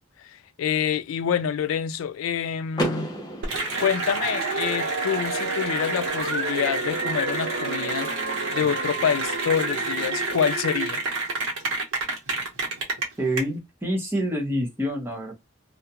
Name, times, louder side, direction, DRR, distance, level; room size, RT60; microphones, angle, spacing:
voice 1, 0.2-3.1 3.8-8.1 8.5-11.0, left 8 dB, 85° left, 0.3 m, -27 dB
Car / Door, 2.7-4.7, equal, 20° left, 0.5 m, -32 dB
Cheering / Applause, 3.4-13.4, right 2 dB, 85° right, 0.8 m, -28 dB
Dog, 4.2-10.6, right 4 dB, 60° right, 0.4 m, -36 dB
voice 2, 13.2-15.3, equal, 10° right, 0.8 m, -27 dB
2.4 x 2.1 x 2.8 m
head